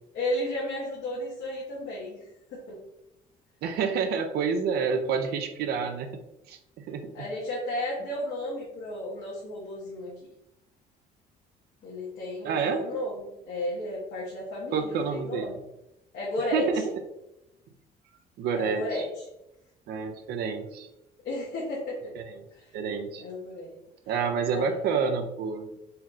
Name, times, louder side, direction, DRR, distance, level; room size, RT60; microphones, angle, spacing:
voice 1, 0.1-2.2 2.5-2.8 7.1-10.1 11.8-15.6 16.1-16.8 18.5-19.2 21.2-22.1 22.5-22.7 23.2-23.8 24.5-24.8, left 1 dB, 80° left, -7 dB, 1.2 m, -33 dB
voice 2, 3.6-6.2 6.5-7.3 12.4-12.9 14.7-15.5 16.5-16.9 18.4-19.0 19.9-20.9 22.2-22.3 22.7-23.2 24.1-25.7, right 6 dB, 70° right, 6 dB, 0.5 m, -29 dB
4.1 x 3.0 x 2.5 m, 0.87 s
cardioid pair, 110°, 17 cm